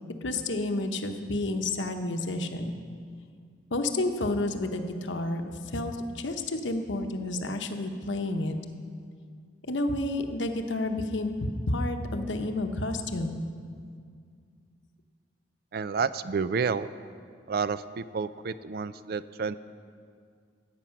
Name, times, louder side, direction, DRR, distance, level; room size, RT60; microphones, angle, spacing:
voice 1, 0.2-2.8 3.7-8.6 9.7-11.3 11.7-13.4, left 2 dB, 80° left, 6 dB, 1.0 m, -30 dB
voice 2, 15.7-16.9 17.5-19.6, right 5 dB, 55° right, 15 dB, 0.4 m, -30 dB
15.0 x 8.4 x 5.9 m, 2.2 s
head